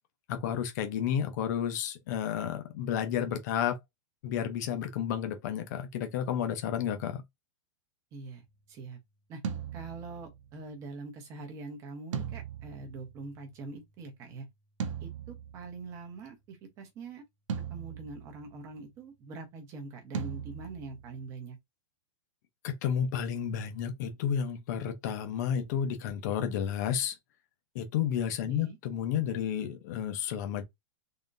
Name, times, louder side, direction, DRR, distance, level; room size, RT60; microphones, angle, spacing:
voice 1, 0.3-3.8 4.2-7.2 22.6-27.1 27.7-30.6, left 9 dB, 35° left, 0.8 m, -31 dB
voice 2, 8.1-9.0 9.3-9.4 9.7-14.5 15.0-17.2 17.7-21.6 28.4-28.8, right 3 dB, 20° right, 0.9 m, -44 dB
sound 1, 9.4-10.6 12.1-13.7 14.8-16.0 17.5-18.7 20.1-21.3, right 7 dB, 75° right, 0.8 m, -39 dB
3.7 x 2.9 x 2.6 m
supercardioid pair, 175°, 16 cm